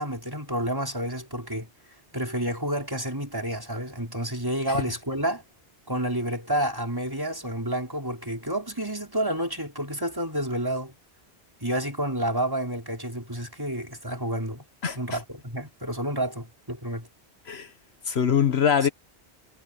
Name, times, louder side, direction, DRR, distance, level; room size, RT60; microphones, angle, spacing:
voice 1, 0.0-1.7 2.1-5.4 5.9-10.9 11.6-14.6 14.9-17.1, right 1 dB, 20° right, 4.5 m, -29 dB
voice 2, 14.8-15.2 17.5-17.7 18.1-18.9, left 7 dB, 70° left, 1.3 m, -23 dB
omnidirectional pair, 1.1 m